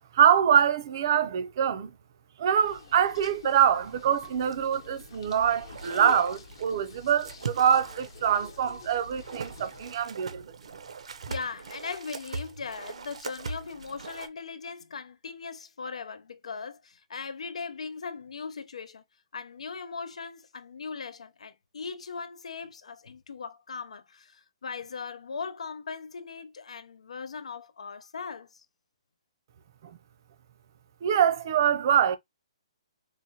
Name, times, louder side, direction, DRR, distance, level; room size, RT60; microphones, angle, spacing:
voice 1, 0.1-1.9 2.4-10.4 31.0-32.2, right 8 dB, 35° right, 0.5 m, -24 dB
sound 1, 2.6-10.0, left 6 dB, 50° left, 0.9 m, -47 dB
sound 2, 4.4-14.3, right 4 dB, 80° right, 0.8 m, -42 dB
voice 2, 11.3-19.0 19.3-28.6, left 5 dB, 85° left, 0.6 m, -39 dB
4.7 x 2.2 x 2.7 m
hypercardioid pair, 170°, 3 cm